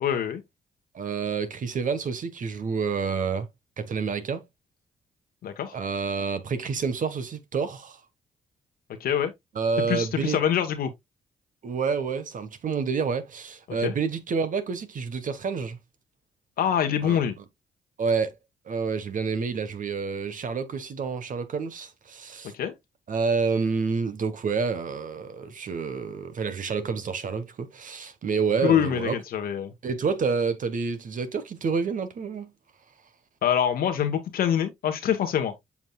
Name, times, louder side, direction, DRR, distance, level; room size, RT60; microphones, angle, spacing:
voice 1, 0.0-0.4 5.4-5.7 9.0-9.3 9.9-10.9 13.8-13.9 16.6-17.4 22.5-22.7 28.6-29.7 33.4-35.5, left 9 dB, 70° left, 1.2 m, -25 dB
voice 2, 0.9-3.5 3.8-4.4 5.7-8.0 9.5-10.4 11.6-15.8 17.0-17.2 18.0-18.4 18.7-22.5 23.1-29.2 29.8-32.5, right 5 dB, 55° right, 1.3 m, -28 dB
7.1 x 6.0 x 2.3 m
hypercardioid pair, 50°, 16 cm